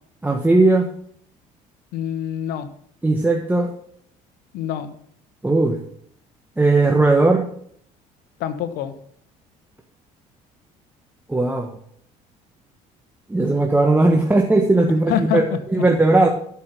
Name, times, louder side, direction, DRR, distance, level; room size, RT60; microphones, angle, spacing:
voice 1, 0.2-0.9 3.0-3.7 5.4-5.8 6.6-7.4 11.3-11.7 13.3-15.4 15.7-16.3, right 2 dB, 10° right, 1 dB, 1.4 m, -17 dB
voice 2, 1.9-2.7 4.5-4.9 8.4-8.9 15.1-15.6, left 9 dB, 75° left, 10 dB, 1.1 m, -25 dB
12.0 x 5.7 x 6.7 m, 0.63 s
supercardioid pair, 85°, 16 cm